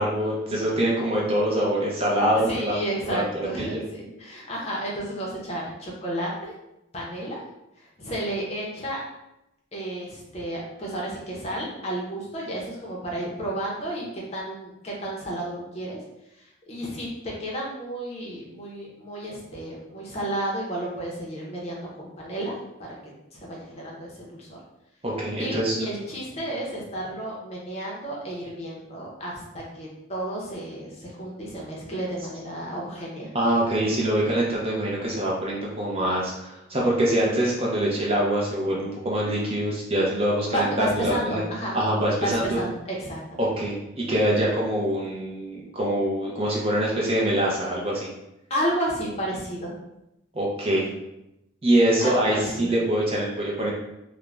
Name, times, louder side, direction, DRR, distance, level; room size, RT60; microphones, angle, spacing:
voice 1, 0.0-2.8 3.0-3.2 3.6-3.8 25.0-25.7 33.3-41.4 41.7-42.6 43.4-48.1 50.3-50.9 51.6-53.7, right 1 dB, 30° right, -4 dB, 0.5 m, -24 dB
voice 2, 2.3-6.5 6.9-7.4 7.8-9.0 9.7-16.0 16.3-22.5 22.8-24.6 25.4-33.3 40.5-41.8 42.2-43.5 48.5-49.7 50.7-51.0 52.0-52.7, right 1 dB, 35° left, -3 dB, 0.6 m, -32 dB
2.4 x 2.1 x 3.1 m, 0.88 s
head